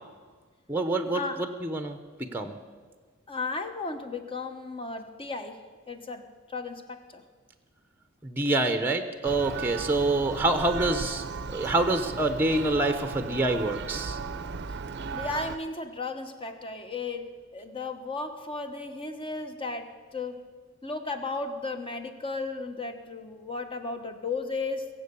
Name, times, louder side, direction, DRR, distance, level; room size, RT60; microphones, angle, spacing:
voice 1, 0.7-2.6 8.2-11.2 11.5-14.2, right 2 dB, 10° right, 7 dB, 0.9 m, -26 dB
voice 2, 3.3-7.2 14.7-14.8 15.1-20.4 20.8-24.9, left 3 dB, 25° left, 7 dB, 1.2 m, -35 dB
Church bell, 9.2-15.6, right 5 dB, 55° right, 0.6 m, -36 dB
23.0 x 7.8 x 7.0 m, 1.5 s
head